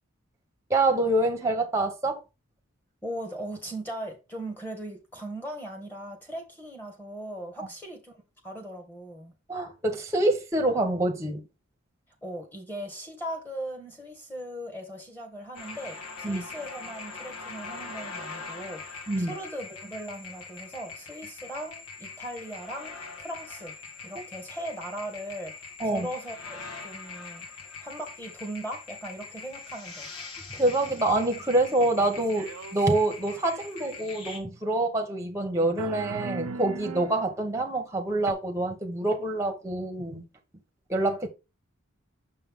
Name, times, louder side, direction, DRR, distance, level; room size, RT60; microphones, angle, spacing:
voice 1, 0.7-2.2 7.6-7.7 9.5-11.4 16.2-16.4 19.1-19.3 24.1-24.2 25.8-26.1 30.5-40.2 40.9-41.3, right 2 dB, 15° right, 1.1 m, -26 dB
voice 2, 3.0-9.3 12.2-22.9 23.2-23.7 24.0-30.1, right 1 dB, 10° left, 1.7 m, -39 dB
sound 1, 15.6-34.4, left 4 dB, 80° left, 1.6 m, -42 dB
sound 2, 32.4-32.9 33.2-34.0 35.8-37.2 38.3-38.4, right 4 dB, 90° right, 0.7 m, -38 dB
6.8 x 5.5 x 3.7 m
head